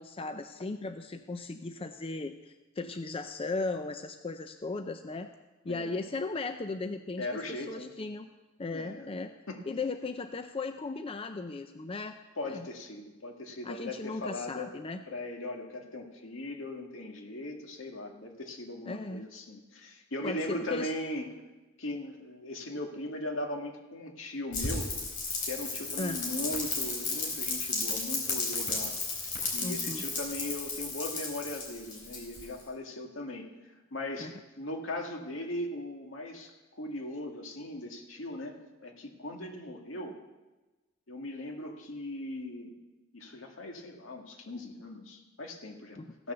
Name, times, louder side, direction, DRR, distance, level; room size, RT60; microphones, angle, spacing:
voice 1, 0.0-5.3 5.6-8.3 8.6-9.3 9.7-12.2 12.4-12.7 13.6-15.0 18.9-19.3 20.2-20.9 26.0-26.2 29.6-30.0 34.2-34.3 46.0-46.1, left 3 dB, 30° left, 7 dB, 0.5 m, -37 dB
voice 2, 5.7-6.0 7.2-7.9 8.7-9.1 9.5-9.6 12.4-14.7 15.1-21.3 21.8-24.9 25.4-28.9 29.5-33.5 33.9-40.2 41.1-42.8 43.1-46.0 46.2-46.3, left 1 dB, 75° left, 2 dB, 1.9 m, -39 dB
Rain, 24.5-32.6, left 3 dB, 45° left, 3.7 m, -34 dB
16.0 x 6.7 x 6.8 m, 1.1 s
head